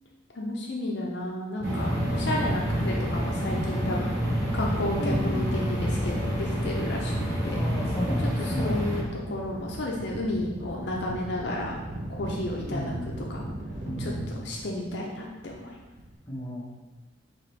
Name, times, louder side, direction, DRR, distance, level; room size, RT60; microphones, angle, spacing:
voice 1, 0.4-4.1 4.5-7.6 8.4-11.8 12.1-12.9 13.3-13.4 14.0-14.1 14.4-15.7, left 1 dB, 60° left, -2 dB, 0.5 m, -32 dB
sound 1, 1.6-16.2, right 1 dB, 40° right, 0.5 m, -38 dB
sound 2, 1.6-9.0, equal, 80° right, 1.2 m, -28 dB
voice 2, 4.7-5.6 7.5-8.8 12.5-13.1 13.8-14.4 16.3-16.7, equal, 15° left, -7 dB, 0.9 m, -34 dB
4.2 x 3.1 x 3.2 m, 1.2 s
head